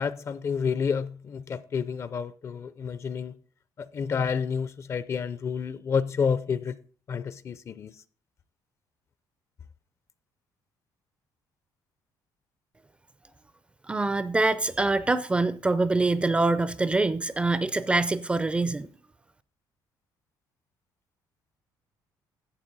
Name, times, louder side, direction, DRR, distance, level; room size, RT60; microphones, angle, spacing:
voice 1, 0.0-3.3 3.9-6.7 7.1-7.9, left 6 dB, 35° left, 0.5 m, -29 dB
voice 2, 13.9-18.9, right 3 dB, 15° right, 0.4 m, -25 dB
11.5 x 7.9 x 4.0 m
cardioid pair, 145°, 8 cm